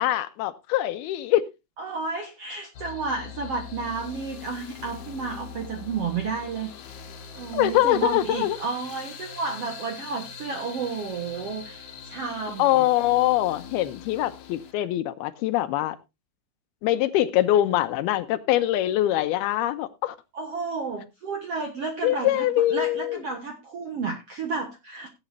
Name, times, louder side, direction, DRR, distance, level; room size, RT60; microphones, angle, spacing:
voice 1, 0.0-1.4 7.5-8.6 12.6-16.0 16.8-20.2 22.0-23.2, left 14 dB, 80° left, 12 dB, 2.6 m, -23 dB
voice 2, 1.8-6.7 7.3-12.9 20.3-25.1, right 4 dB, 60° right, 4 dB, 1.6 m, -32 dB
sound 1, 2.7-14.7, left 6 dB, 60° left, 2.2 m, -42 dB
18.0 x 8.7 x 2.7 m, 0.25 s
omnidirectional pair, 4.6 m